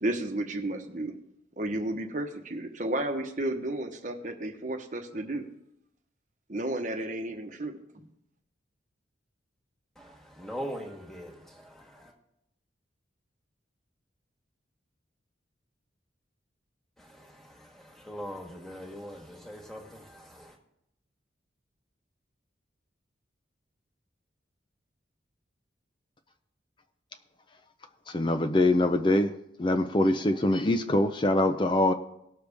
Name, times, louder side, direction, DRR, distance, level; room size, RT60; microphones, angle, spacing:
voice 1, 0.0-1.1 1.6-5.5 6.5-7.8, right 1 dB, 40° right, 1.0 m, -32 dB
voice 2, 9.9-12.1 17.0-20.6, equal, ahead, 1.5 m, -42 dB
voice 3, 28.1-29.3 29.6-31.9, left 1 dB, 25° left, 0.5 m, -23 dB
19.0 x 6.7 x 3.5 m
head